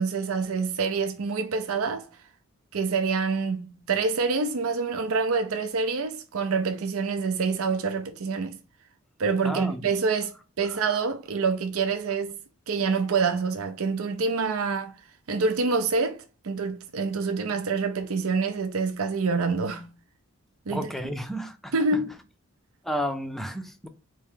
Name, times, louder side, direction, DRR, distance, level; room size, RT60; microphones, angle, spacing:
voice 1, 0.0-2.1 2.7-8.6 9.2-12.4 12.7-14.9 15.3-19.9 20.7-20.9 21.7-22.1, right 4 dB, 75° right, 0.6 m, -26 dB
voice 2, 9.4-9.8 10.6-10.8 20.7-22.0 22.8-23.9, equal, ahead, 0.4 m, -32 dB
4.4 x 2.8 x 3.5 m
head